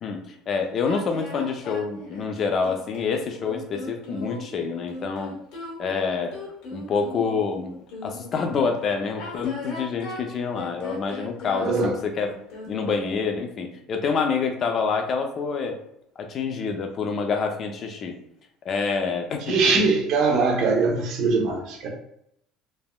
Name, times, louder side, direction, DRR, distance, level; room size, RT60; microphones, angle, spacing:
voice 1, 0.0-5.3 5.8-6.3 6.7-7.7 8.0-12.3 12.7-15.8 16.2-18.2 18.6-19.6, left 5 dB, 45° left, 4 dB, 0.5 m, -27 dB
sound 1, 0.8-8.4 9.1-13.1, left 3 dB, 75° left, 1.0 m, -38 dB
voice 2, 11.6-12.0 19.5-21.9, right 4 dB, 60° right, 1 dB, 0.8 m, -22 dB
3.4 x 2.0 x 2.3 m, 0.75 s
supercardioid pair, 105°, 0 cm